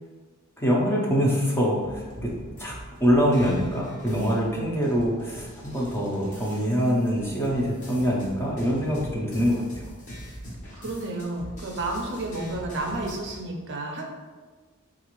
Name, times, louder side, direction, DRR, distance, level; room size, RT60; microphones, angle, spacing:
voice 1, 0.6-2.3 2.6-2.7 3.0-9.9, equal, 10° left, -4 dB, 0.6 m, -24 dB
sound 1, 1.8-13.4, equal, 40° left, 0.9 m, -42 dB
voice 2, 10.7-14.0, right 2 dB, 60° right, 1 dB, 0.5 m, -31 dB
3.9 x 2.5 x 3.0 m, 1.3 s
head